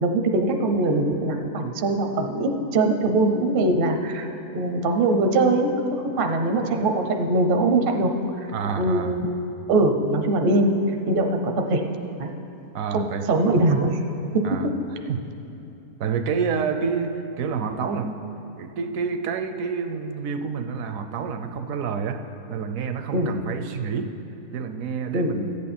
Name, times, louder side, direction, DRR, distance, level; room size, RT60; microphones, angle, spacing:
voice 1, 0.0-4.3 4.5-8.1 8.4-8.5 8.8-9.3 9.7-10.7 11.1-11.9 12.2-12.3 12.9-14.0 14.3-14.6 23.1-23.3 25.1-25.3, right 2 dB, 55° right, 5 dB, 0.6 m, -22 dB
voice 2, 8.5-9.2 12.7-13.3 14.4-14.7 15.1-15.2 16.0-18.2 18.6-22.2 22.5-24.1 24.5-25.6, right 6 dB, 70° right, 8 dB, 0.9 m, -28 dB
14.0 x 8.5 x 4.2 m, 2.8 s
omnidirectional pair, 1.6 m